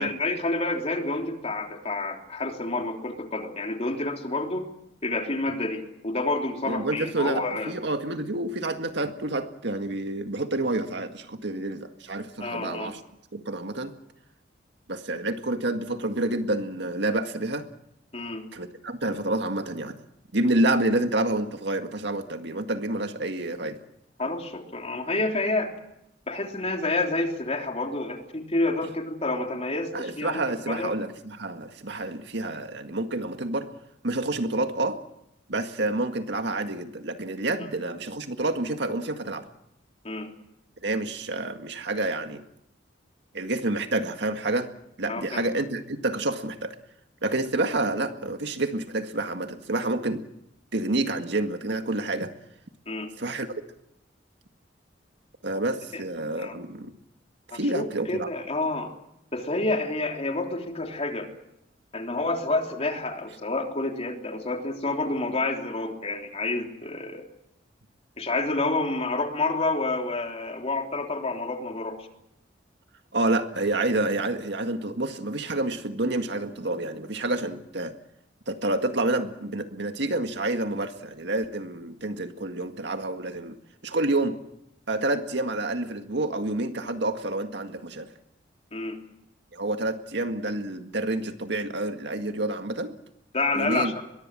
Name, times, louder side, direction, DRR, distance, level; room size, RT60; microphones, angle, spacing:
voice 1, 0.0-4.6 5.0-7.7 12.4-13.0 18.1-18.5 24.2-25.7 26.3-30.9 37.6-37.7 40.0-40.3 45.1-45.4 52.9-53.1 55.9-56.0 56.4-56.5 57.5-58.9 59.3-61.3 61.9-67.2 68.2-72.1 88.7-89.0 93.3-94.0, left 2 dB, 35° left, 3 dB, 3.3 m, -29 dB
voice 2, 6.7-13.0 13.3-13.9 14.9-17.7 18.5-20.0 20.3-23.8 29.9-33.7 34.0-35.0 35.5-39.5 40.8-42.4 43.3-44.7 45.0-46.8 47.2-50.2 50.7-52.3 53.2-53.5 55.4-57.0 57.5-58.3 73.1-77.9 78.5-83.6 83.8-84.4 84.9-88.1 89.5-93.0 93.6-93.9, right 2 dB, 65° right, 7 dB, 1.9 m, -28 dB
23.0 x 22.0 x 7.6 m, 0.80 s
head